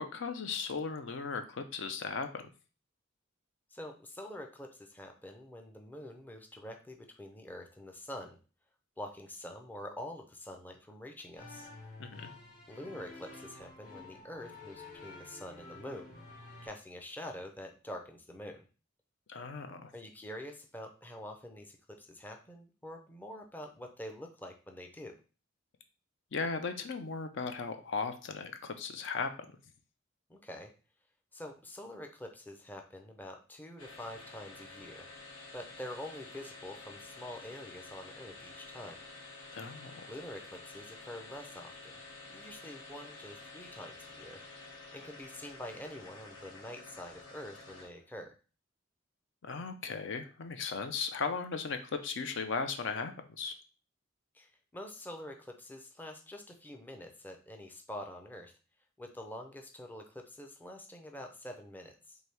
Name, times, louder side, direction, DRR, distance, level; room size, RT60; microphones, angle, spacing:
voice 1, 0.0-2.5 12.0-12.3 19.3-19.9 26.3-29.5 39.5-40.1 49.4-53.6, left 5 dB, 65° left, 8 dB, 0.5 m, -37 dB
voice 2, 3.7-8.4 9.0-11.7 12.7-16.1 16.6-18.6 19.9-25.2 30.3-30.7 31.3-35.1 35.5-39.0 40.1-42.0 42.3-44.4 44.9-48.3 54.3-58.5 59.0-62.2, left 1 dB, 10° left, 3 dB, 0.5 m, -46 dB
sound 1, 11.4-16.7, left 2 dB, 45° left, 1.5 m, -50 dB
sound 2, 33.8-48.1, left 3 dB, 85° left, 1.3 m, -50 dB
4.5 x 2.7 x 3.3 m, 0.35 s
head